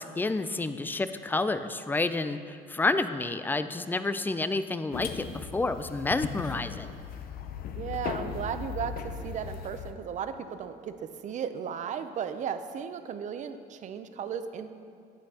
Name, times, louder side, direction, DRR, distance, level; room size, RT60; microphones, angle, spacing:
voice 1, 0.0-5.3 5.5-7.0, left 3 dB, 10° left, 11 dB, 0.3 m, -29 dB
sound 1, 4.9-9.9, left 7 dB, 60° left, 0.6 m, -37 dB
voice 2, 7.7-14.8, right 7 dB, 45° right, 10 dB, 0.5 m, -35 dB
11.5 x 7.9 x 2.8 m, 2.4 s
cardioid pair, 110°, 17 cm